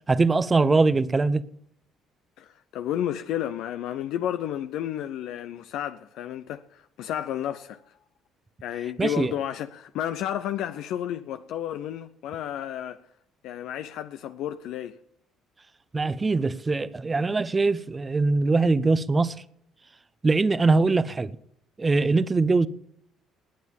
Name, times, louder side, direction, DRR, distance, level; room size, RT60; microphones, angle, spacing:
voice 1, 0.1-1.4 9.0-9.3 15.9-19.3 20.2-21.3 21.8-22.7, right 3 dB, 25° right, 0.8 m, -22 dB
voice 2, 2.4-7.8 8.6-13.0 13.4-15.0, left 11 dB, 70° left, 0.6 m, -32 dB
19.0 x 9.3 x 7.2 m
hypercardioid pair, 55°, 0 cm